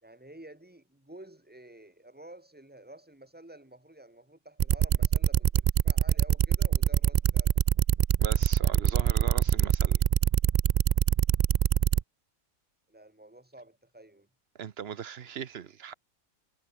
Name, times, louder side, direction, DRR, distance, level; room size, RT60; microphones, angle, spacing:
voice 1, 0.0-7.6 12.9-14.3, right 1 dB, 5° right, 3.3 m, -51 dB
sound 1, 4.6-12.0, right 9 dB, 85° right, 0.3 m, -23 dB
voice 2, 8.2-10.0 14.6-15.9, right 8 dB, 50° right, 1.0 m, -39 dB
omnidirectional pair, 1.5 m